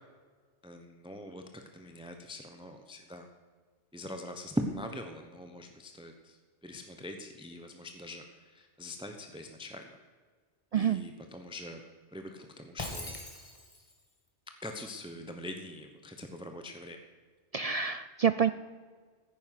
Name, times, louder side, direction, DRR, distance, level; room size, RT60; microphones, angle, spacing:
voice 1, 0.6-3.3 3.9-6.4 6.6-9.9 10.7-11.8 12.1-13.1 14.6-17.0, equal, 5° right, 5 dB, 1.0 m, -42 dB
voice 2, 10.7-11.0 17.5-18.5, right 7 dB, 75° right, 12 dB, 0.3 m, -27 dB
Shatter, 12.8-14.0, left 1 dB, 30° left, 2.3 m, -41 dB
15.0 x 9.7 x 5.9 m, 1.5 s
omnidirectional pair, 1.2 m